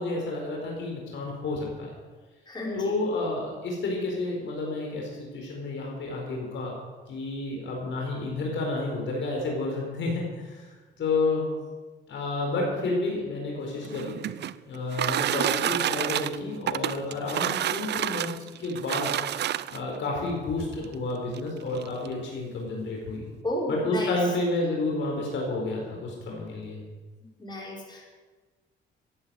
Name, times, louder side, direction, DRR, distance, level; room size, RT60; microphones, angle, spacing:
voice 1, 0.0-1.9 2.7-6.7 7.1-10.7 11.0-11.4 12.1-14.2 14.7-18.3 18.6-19.2 19.7-23.3 23.7-26.8, left 2 dB, 70° left, -1 dB, 4.5 m, -30 dB
voice 2, 2.5-3.0 10.9-11.0 23.4-24.1 27.2-28.1, left 1 dB, 20° left, -3 dB, 5.6 m, -33 dB
sound 1, 13.7-20.0 20.8-20.9 21.3-21.4 21.7-22.1, right 11 dB, 60° right, 0.5 m, -29 dB
15.0 x 9.1 x 7.7 m, 1.3 s
cardioid pair, 90°, 20 cm